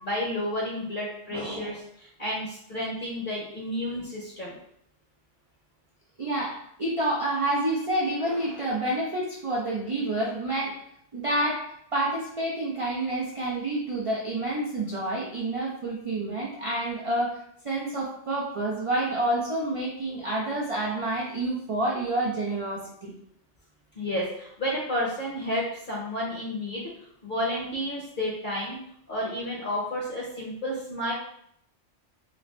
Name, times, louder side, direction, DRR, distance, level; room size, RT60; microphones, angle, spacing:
voice 1, 0.0-4.6 23.9-26.9 27.2-28.8 29.1-31.1, equal, 50° left, -5 dB, 0.9 m, -31 dB
voice 2, 1.3-1.8 6.2-10.8 11.1-11.6 11.9-17.4 17.6-23.1, right 1 dB, 50° right, -4 dB, 0.4 m, -28 dB
3.3 x 2.5 x 3.1 m, 0.71 s
omnidirectional pair, 1.3 m